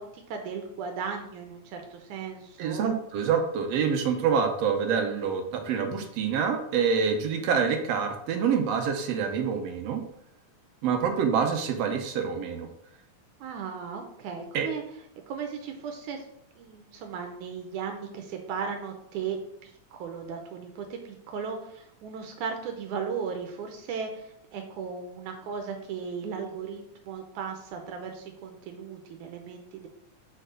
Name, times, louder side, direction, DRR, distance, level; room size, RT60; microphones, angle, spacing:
voice 1, 0.0-2.9 13.4-14.8 15.3-16.3 16.6-29.9, right 6 dB, 90° right, 3 dB, 2.2 m, -36 dB
voice 2, 2.6-10.0 10.8-12.7 14.5-14.7, right 6 dB, 75° right, 5 dB, 1.7 m, -26 dB
5.3 x 4.6 x 6.2 m, 0.74 s
omnidirectional pair, 3.4 m